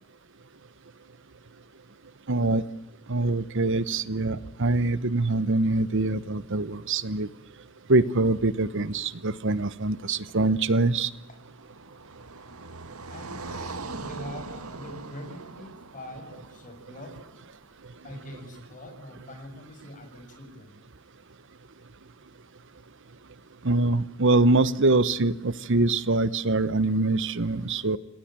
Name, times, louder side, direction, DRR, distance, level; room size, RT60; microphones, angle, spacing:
voice 1, 2.3-2.6 3.1-7.3 7.9-11.1 23.6-28.0, right 2 dB, 60° right, 17 dB, 1.0 m, -24 dB
Car passing by, 10.5-17.7, right 3 dB, 90° right, 2.0 m, -42 dB
voice 2, 13.1-17.4 18.0-20.8, equal, 35° left, 5 dB, 6.9 m, -43 dB
29.0 x 19.5 x 8.9 m, 0.89 s
head